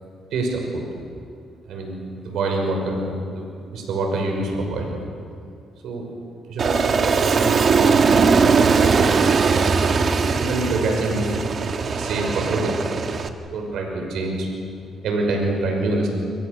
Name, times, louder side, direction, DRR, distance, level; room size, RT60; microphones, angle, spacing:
voice 1, 0.3-0.8 1.7-5.0 5.8-6.1 6.5-7.6 8.0-9.1 10.4-11.4 11.9-12.9 13.5-14.5 15.0-16.1, right 2 dB, 75° right, 1 dB, 5.7 m, -26 dB
Aircraft, 6.6-13.3, right 5 dB, 50° right, 1.8 m, -19 dB
29.0 x 24.5 x 6.8 m, 2.3 s
cardioid pair, 90°, 0 cm